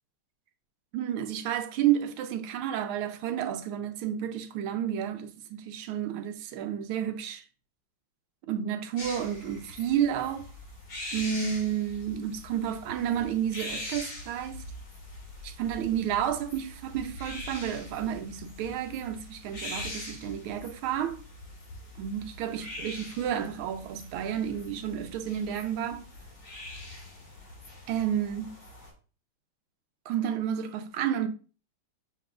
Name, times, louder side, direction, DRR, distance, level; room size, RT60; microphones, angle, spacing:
voice 1, 0.9-7.4 8.5-10.5 11.1-14.6 15.4-21.2 22.0-26.1 27.9-28.6 30.1-31.3, right 9 dB, 80° right, 1.4 m, -31 dB
sound 1, 9.0-28.9, left 1 dB, 60° left, 2.6 m, -43 dB
6.7 x 3.0 x 2.4 m
omnidirectional pair, 2.4 m